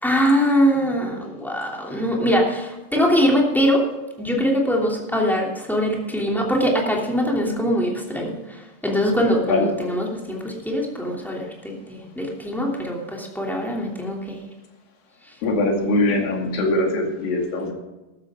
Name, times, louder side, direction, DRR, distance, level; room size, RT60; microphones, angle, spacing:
voice 1, 0.0-3.8 4.2-14.4, equal, ahead, -2 dB, 1.9 m, -22 dB
voice 2, 15.4-17.7, left 2 dB, 60° left, 1 dB, 3.9 m, -22 dB
14.5 x 13.0 x 3.8 m, 1.1 s
omnidirectional pair, 4.8 m